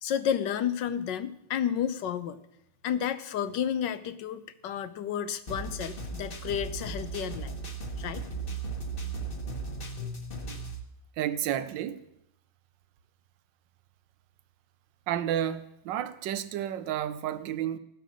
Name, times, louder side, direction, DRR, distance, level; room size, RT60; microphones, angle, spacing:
voice 1, 0.0-2.4 2.8-7.5 8.0-8.2, left 9 dB, 70° left, 1.3 m, -31 dB
sound 1, 5.5-10.8, right 3 dB, 30° left, 1.4 m, -36 dB
voice 2, 11.2-12.0 15.1-17.8, right 11 dB, 70° right, 1.4 m, -31 dB
16.0 x 7.8 x 6.3 m
omnidirectional pair, 2.2 m